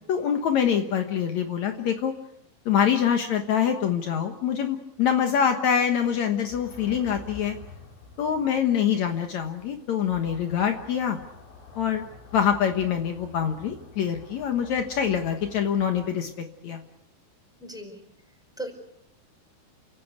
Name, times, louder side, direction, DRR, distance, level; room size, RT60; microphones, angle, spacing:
voice 1, 0.1-2.1 2.6-7.6 8.2-11.2 11.7-12.1 12.3-16.8, left 8 dB, 85° left, 6 dB, 1.6 m, -25 dB
voice 2, 5.1-5.4 17.6-18.0 18.6-18.7, right 1 dB, ahead, 5 dB, 4.2 m, -37 dB
sound 1, 6.5-16.1, left 4 dB, 45° left, 5.3 m, -48 dB
29.0 x 17.0 x 8.2 m, 0.82 s
omnidirectional pair, 5.4 m